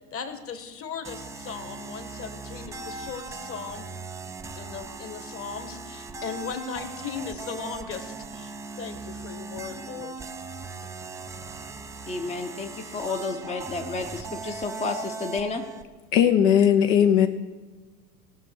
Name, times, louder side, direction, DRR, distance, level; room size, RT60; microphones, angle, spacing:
voice 1, 0.1-3.9 4.6-10.1 10.8-10.9, left 6 dB, 30° left, 9 dB, 1.5 m, -37 dB
sound 1, 1.0-15.9, right 4 dB, 10° right, 0.4 m, -39 dB
voice 2, 12.1-15.6, left 3 dB, 15° left, 4 dB, 0.8 m, -31 dB
voice 3, 16.1-17.3, left 9 dB, 55° left, 7 dB, 0.9 m, -18 dB
17.0 x 6.1 x 6.4 m, 1.3 s
hypercardioid pair, 95°, 44 cm